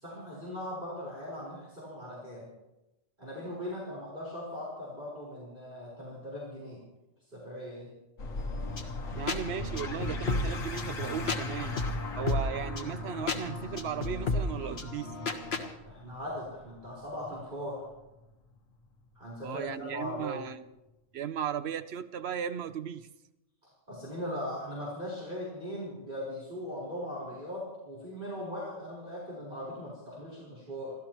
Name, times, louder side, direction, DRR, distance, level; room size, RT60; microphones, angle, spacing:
voice 1, 0.0-2.5 3.2-6.8 7.3-7.9 15.8-17.8 19.1-20.5 23.9-30.9, left 1 dB, 40° right, 4.8 m, -39 dB
sound 1, 8.2-19.3, left 2 dB, 80° left, 1.7 m, -40 dB
sound 2, 8.4-15.7, left 3 dB, 50° left, 1.5 m, -34 dB
voice 2, 9.1-11.8 12.2-15.1 19.4-20.6 21.1-23.1, right 8 dB, 60° right, 0.8 m, -36 dB
29.0 x 13.0 x 3.0 m
omnidirectional pair, 1.4 m